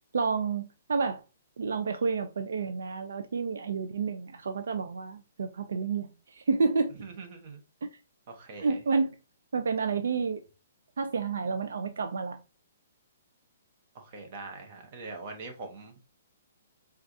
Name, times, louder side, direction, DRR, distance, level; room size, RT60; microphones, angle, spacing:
voice 1, 0.1-1.2 1.6-6.9 8.6-9.2 9.5-10.4 11.0-12.4, right 4 dB, 80° right, 0.3 m, -30 dB
voice 2, 6.9-7.6 8.3-8.8 13.9-16.1, right 3 dB, 40° right, 1.0 m, -43 dB
4.4 x 2.3 x 2.6 m
hypercardioid pair, 155°, 0 cm